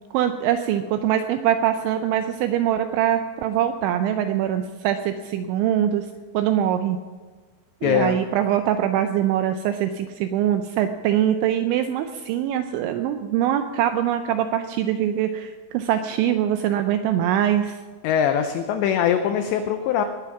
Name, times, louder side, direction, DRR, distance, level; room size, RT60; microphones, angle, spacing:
voice 1, 0.1-6.1 6.3-7.0 7.8-17.8, right 10 dB, 85° right, 8 dB, 2.6 m, -23 dB
voice 2, 7.8-8.2 18.0-20.0, left 8 dB, 90° left, 7 dB, 2.5 m, -22 dB
20.5 x 9.2 x 5.9 m, 1.4 s
omnidirectional pair, 6.0 m